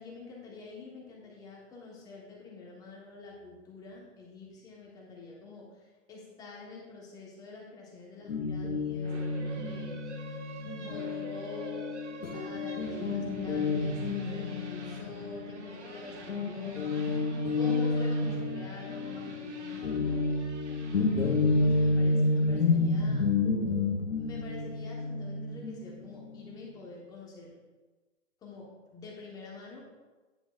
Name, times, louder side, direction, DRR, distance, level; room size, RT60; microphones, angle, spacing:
voice 1, 0.0-10.0 10.8-12.0 12.3-17.0 17.6-20.4 21.5-23.3 24.1-27.5 28.4-29.8, left 4 dB, 10° left, -3 dB, 1.1 m, -46 dB
Guitar, 8.3-16.0 16.3-26.7, left 3 dB, 85° left, 1.0 m, -30 dB
sound 1, 9.0-22.6, right 3 dB, 65° right, 1.2 m, -46 dB
9.9 x 6.3 x 2.4 m, 1.3 s
hypercardioid pair, 150°, 37 cm